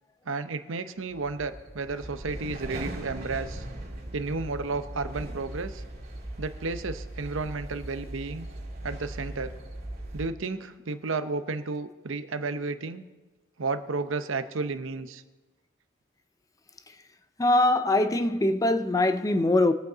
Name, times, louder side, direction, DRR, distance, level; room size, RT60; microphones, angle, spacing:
voice 1, 0.3-3.6 4.1-5.8 6.4-8.5 8.8-9.5 10.1-13.0 13.6-15.2, right 3 dB, 70° right, 0.7 m, -32 dB
sound 1, 1.1-10.3, right 1 dB, 45° right, 2.2 m, -39 dB
voice 2, 17.4-19.7, left 2 dB, 15° left, 0.4 m, -23 dB
21.5 x 8.1 x 3.9 m
head